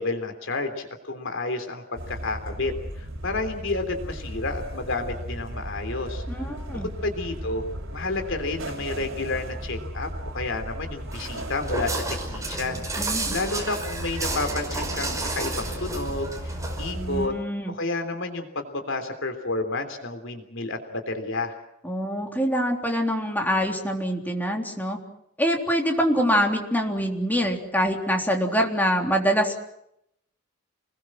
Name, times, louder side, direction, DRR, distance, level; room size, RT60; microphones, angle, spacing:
voice 1, 0.0-7.6 7.9-12.0 12.3-17.3 17.7-21.5, left 2 dB, 65° left, 5 dB, 3.4 m, -31 dB
sound 1, 2.0-17.3, equal, 65° right, 6.1 m, -35 dB
voice 2, 6.3-6.9 13.0-13.4 17.0-17.7 21.8-25.0 25.4-29.5, equal, 10° left, 2 dB, 3.6 m, -25 dB
Walk footsteps, 11.1-16.9, right 3 dB, 15° right, 5.4 m, -32 dB
30.0 x 21.5 x 6.3 m, 0.78 s
head